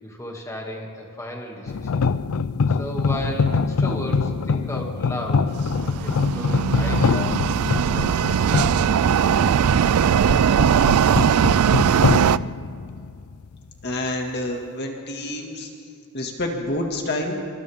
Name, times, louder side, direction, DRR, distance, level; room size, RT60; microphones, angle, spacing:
voice 1, 0.0-2.0 2.7-5.4 5.8-7.3 7.6-8.8, equal, 15° left, -1 dB, 2.5 m, -34 dB
sound 1, 1.7-13.5, left 5 dB, 70° left, 0.5 m, -24 dB
sound 2, 5.5-12.4, right 7 dB, 85° right, 0.4 m, -19 dB
voice 2, 13.8-15.7 16.1-17.4, left 1 dB, 50° left, 1 dB, 2.1 m, -28 dB
28.0 x 25.5 x 3.7 m, 2.4 s
head